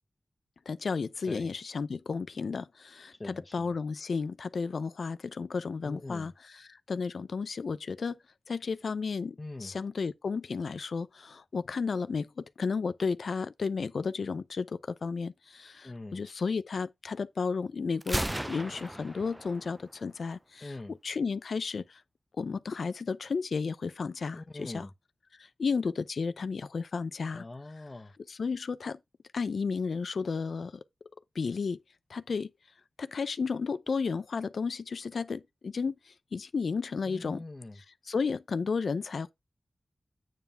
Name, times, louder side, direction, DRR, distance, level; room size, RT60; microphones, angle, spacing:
voice 1, 0.7-8.2 8.5-18.2 18.5-22.0 22.4-24.9 25.4-27.4 28.3-29.0 29.3-30.7 31.3-31.8 32.1-32.5 33.0-37.4 38.0-39.3, left 5 dB, 80° left, 0.6 m, -33 dB
voice 2, 3.1-3.8 5.8-6.3 9.4-9.7 15.8-16.2 20.6-20.9 24.3-24.9 27.3-28.1 37.0-37.8, left 2 dB, 35° left, 0.8 m, -43 dB
Gunshot gunfire, 18.0-20.0, right 1 dB, 10° right, 0.4 m, -35 dB
9.2 x 3.4 x 5.5 m
cardioid pair, 50°, 0 cm